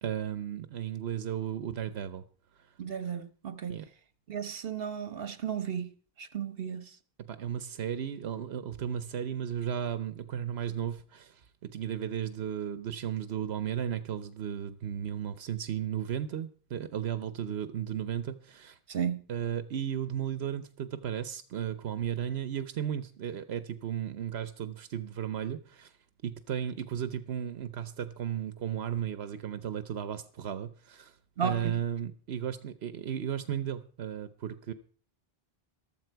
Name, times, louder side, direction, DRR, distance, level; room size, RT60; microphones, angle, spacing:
voice 1, 0.0-2.2 3.7-3.8 7.2-18.8 19.3-25.9 26.2-31.2 31.4-34.7, right 9 dB, 90° right, 1.1 m, -35 dB
voice 2, 2.8-3.8 4.3-5.9 6.2-6.9 18.9-19.2 31.4-31.8, right 7 dB, 65° right, 1.4 m, -34 dB
14.5 x 12.5 x 4.6 m
omnidirectional pair, 1.0 m